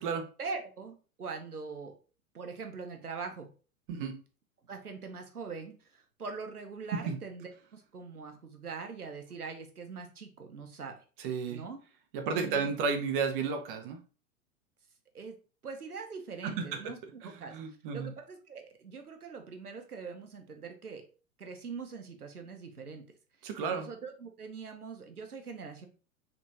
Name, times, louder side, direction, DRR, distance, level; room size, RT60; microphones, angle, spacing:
voice 1, 0.4-2.0 2.3-3.5 4.6-11.0 11.5-11.8 12.3-12.7 15.1-15.3 15.6-17.0 17.2-17.6 17.9-21.0 21.4-23.0 23.7-25.9, right 5 dB, 85° right, 5 dB, 0.8 m, -42 dB
voice 2, 3.9-4.2 6.9-7.2 11.2-11.6 12.1-14.0 16.4-16.9 17.2-18.1 23.4-23.9, right 5 dB, 35° right, 5 dB, 0.7 m, -33 dB
3.4 x 3.0 x 2.7 m, 0.36 s
figure-of-eight pair, 100°, 44 cm